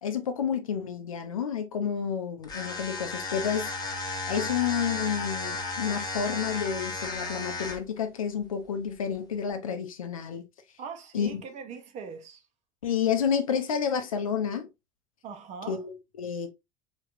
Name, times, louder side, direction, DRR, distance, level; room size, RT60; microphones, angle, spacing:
voice 1, 0.0-3.7 4.3-10.4 11.1-11.4 12.8-14.7 15.7-16.5, left 7 dB, 80° left, 0.5 m, -30 dB
sound 1, 2.4-8.0, left 3 dB, 20° left, 0.9 m, -34 dB
voice 2, 10.8-12.4 15.2-15.8, right 6 dB, 45° right, 0.7 m, -41 dB
3.4 x 2.3 x 2.6 m
figure-of-eight pair, 70°, 17 cm